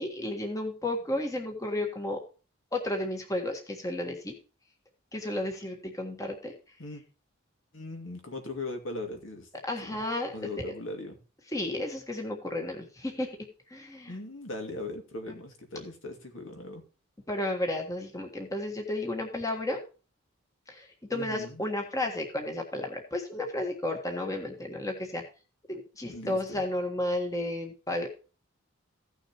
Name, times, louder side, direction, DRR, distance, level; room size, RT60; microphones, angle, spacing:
voice 1, 0.0-2.2 2.7-4.3 5.1-6.5 9.6-10.6 11.5-13.3 13.7-14.1 17.3-19.8 20.7-25.2 25.7-28.2, left 1 dB, 15° left, 3 dB, 1.5 m, -33 dB
voice 2, 7.7-9.5 9.8-10.0 10.3-11.2 14.1-16.9 21.1-21.6 26.1-26.6, left 2 dB, 65° left, 4 dB, 2.4 m, -39 dB
15.5 x 6.4 x 3.0 m, 0.34 s
head